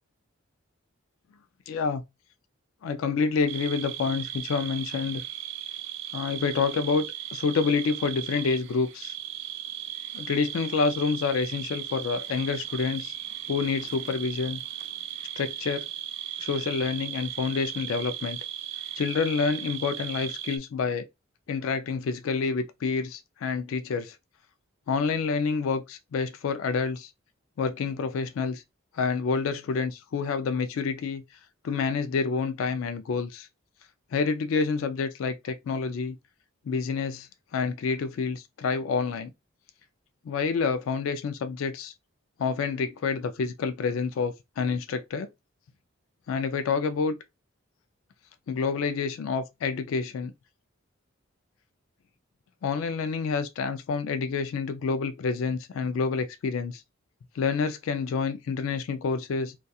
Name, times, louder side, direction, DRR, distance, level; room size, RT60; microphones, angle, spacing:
voice 1, 1.7-2.0 2.8-5.2 6.1-7.1 7.3-9.2 10.1-13.1 13.5-14.6 15.4-15.9 16.4-18.4 19.0-21.1 21.5-24.2 24.9-27.1 27.6-28.6 28.9-31.2 31.6-33.5 34.1-36.2 36.7-39.3 40.2-41.9 42.4-45.3 46.3-47.2 48.5-50.3 52.6-56.8 57.3-59.6, left 5 dB, 75° left, 0.3 m, -28 dB
sound 1, 3.5-20.6, right 12 dB, 60° right, 0.3 m, -37 dB
2.3 x 2.3 x 2.6 m
head